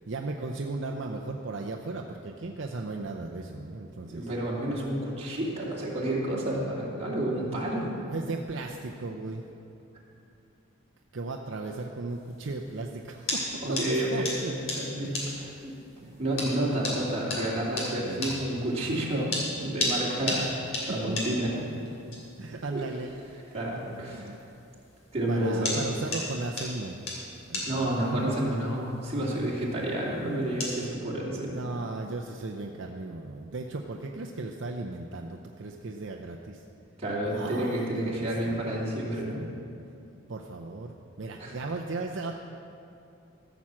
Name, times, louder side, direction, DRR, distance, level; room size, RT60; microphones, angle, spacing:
voice 1, 0.1-4.3 8.1-9.4 11.1-14.5 15.0-15.5 16.0-16.2 18.0-18.3 19.9-20.0 20.3-20.5 21.1-21.8 22.4-23.1 23.4-23.5 24.1-24.4 25.3-27.1 27.5-28.6 31.3-36.6 37.3-38.9 39.3-39.6 40.3-42.4, right 3 dB, 60° right, 1 dB, 0.6 m, -36 dB
voice 2, 4.0-8.0 13.6-15.7 16.2-20.5 20.9-21.5 22.7-22.8 23.5-24.3 25.1-25.8 27.6-31.6 37.0-39.4 41.4-41.6, right 1 dB, 30° right, -5 dB, 2.4 m, -30 dB
sound 1, 12.1-30.9, left 2 dB, 70° left, 3.2 m, -37 dB
14.5 x 6.1 x 7.4 m, 2.7 s
head